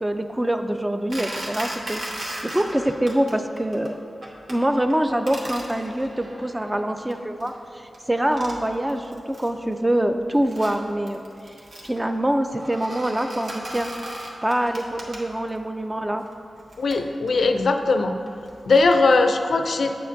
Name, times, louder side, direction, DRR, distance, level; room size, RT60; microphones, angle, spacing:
voice 1, 0.0-4.0 4.5-11.2 11.8-13.9 14.4-16.2, right 1 dB, 15° right, 6 dB, 0.4 m, -25 dB
sound 1, 1.1-3.3 3.6-3.9 4.2-4.6 4.9-7.6 7.9-8.0 8.2-9.6 10.0-15.6 16.2-19.0, right 1 dB, 65° right, 1.1 m, -37 dB
voice 2, 16.8-18.2 18.7-19.9, left 3 dB, 75° left, 6 dB, 0.4 m, -19 dB
8.3 x 6.6 x 2.6 m, 2.5 s
wide cardioid pair, 90°, 0 cm